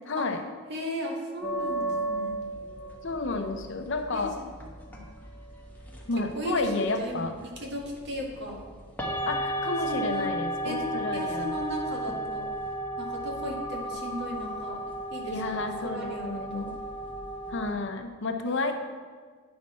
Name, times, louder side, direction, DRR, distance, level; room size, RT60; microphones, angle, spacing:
voice 1, 0.1-0.4 3.0-4.4 6.1-7.4 9.3-11.6 15.3-16.8 17.5-18.7, left 3 dB, 65° left, 6 dB, 0.7 m, -31 dB
voice 2, 0.7-2.3 4.1-4.3 4.9-5.0 6.2-8.6 9.9-10.3 10.6-12.5 13.0-14.8 15.1-16.7 18.4-18.7, equal, 60° right, -1 dB, 1.6 m, -36 dB
sound 1, 1.4-17.7, right 1 dB, 10° left, 1.0 m, -35 dB
9.5 x 5.9 x 4.2 m, 1.5 s
head